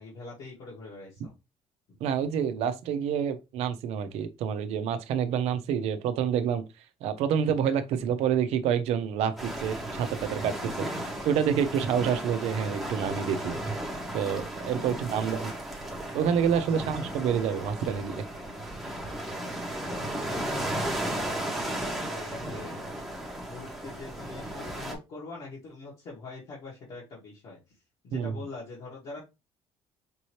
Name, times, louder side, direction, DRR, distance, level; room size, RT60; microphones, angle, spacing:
voice 1, 0.0-1.3 10.9-11.3 14.8-15.5 16.7-16.8 19.9-22.8 23.4-27.8 28.0-29.2, left 3 dB, 55° left, 1.8 m, -44 dB
voice 2, 2.0-6.6 7.0-10.9 11.2-13.5 14.1-15.5 16.1-18.2 28.1-28.3, right 8 dB, 80° right, 0.7 m, -28 dB
sound 1, 9.4-24.9, right 1 dB, ahead, 1.0 m, -35 dB
5.3 x 2.9 x 3.1 m
cardioid pair, 165°, 11 cm